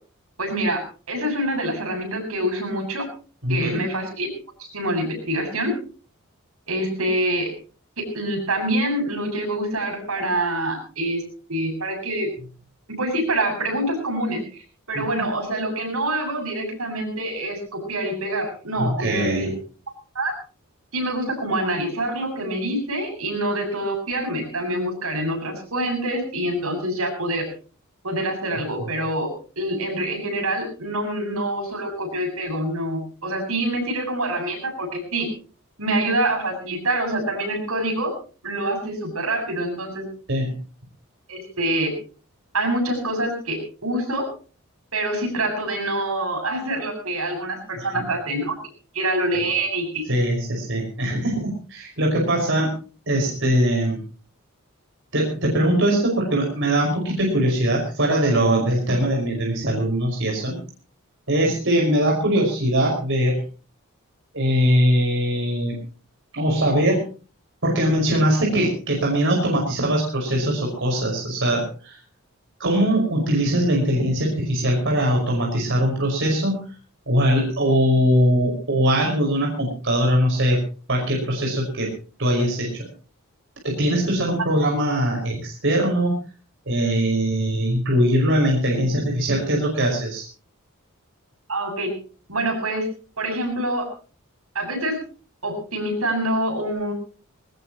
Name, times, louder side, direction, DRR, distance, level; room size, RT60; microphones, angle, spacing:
voice 1, 0.4-0.8 1.1-3.1 3.5-4.3 4.7-5.7 6.7-7.5 8.0-11.2 11.5-12.3 13.0-14.6 14.9-19.6 20.1-20.3 20.9-27.5 28.0-29.3 29.6-35.3 35.8-38.1 38.4-40.1 41.3-41.9 42.5-44.3 44.9-48.5 48.9-50.1 91.5-91.9 92.3-92.9 93.2-93.9 94.5-95.0 95.4-96.9, right 1 dB, 85° right, 4 dB, 7.5 m, -25 dB
voice 2, 3.4-3.8 18.8-19.5 28.8-28.9 40.3-40.5 47.8-48.0 50.1-52.7 53.1-54.0 55.1-60.6 61.3-63.4 64.3-65.8 66.3-67.0 67.6-72.0 72.6-76.6 77.1-80.6 80.9-81.9 82.2-82.7 83.6-86.1 86.7-90.2, equal, 60° right, -1 dB, 5.5 m, -21 dB
21.0 x 19.5 x 3.0 m, 0.37 s
head